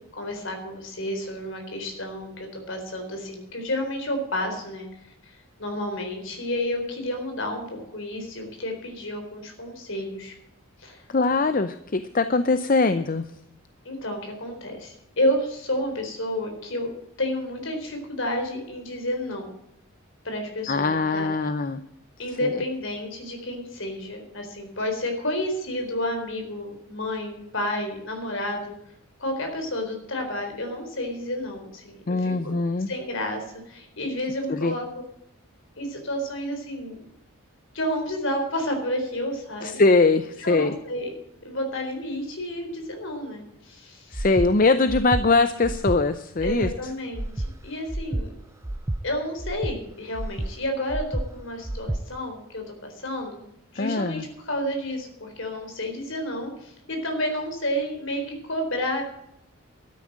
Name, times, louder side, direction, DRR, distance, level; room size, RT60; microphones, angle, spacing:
voice 1, 0.1-4.9 5.2-5.3 5.6-7.7 7.9-10.3 10.8-11.0 13.8-16.9 17.2-19.5 20.2-21.3 22.2-28.8 29.2-32.6 32.9-34.9 35.8-37.0 37.7-39.8 40.4-41.1 41.4-44.3 46.4-48.3 49.0-53.4 53.7-59.0, left 1 dB, 60° left, 4 dB, 4.1 m, -30 dB
voice 2, 11.1-13.2 20.7-21.8 22.4-22.6 32.1-32.9 34.5-34.7 39.6-40.7 44.1-46.9 53.8-54.2, left 3 dB, 40° left, 11 dB, 0.6 m, -22 dB
Breathing, 44.1-44.5 44.9-45.2 45.6-46.0 46.4-46.7 47.1-47.5 47.9-48.2 48.6-49.0 49.4-49.8 50.1-50.5 50.9-51.3 51.6-52.0, right 1 dB, 15° right, 0.4 m, -29 dB
12.5 x 9.8 x 7.5 m, 0.80 s
head